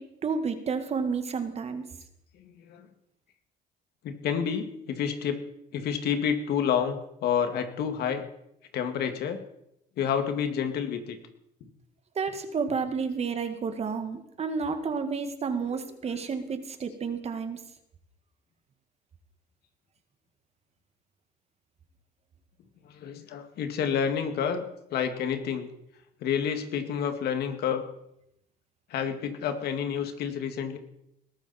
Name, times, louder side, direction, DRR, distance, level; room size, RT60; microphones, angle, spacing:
voice 1, 0.0-1.9 12.2-17.6, right 5 dB, 40° right, 8 dB, 1.8 m, -31 dB
voice 2, 2.3-2.9 4.0-5.4 5.7-8.3 8.7-9.5 10.0-11.2 11.6-11.7 16.0-16.2 22.8-25.7 26.2-27.8 28.9-30.8, left 7 dB, 70° left, 7 dB, 2.2 m, -29 dB
20.5 x 13.5 x 4.3 m, 0.79 s
cardioid pair, 110°, 17 cm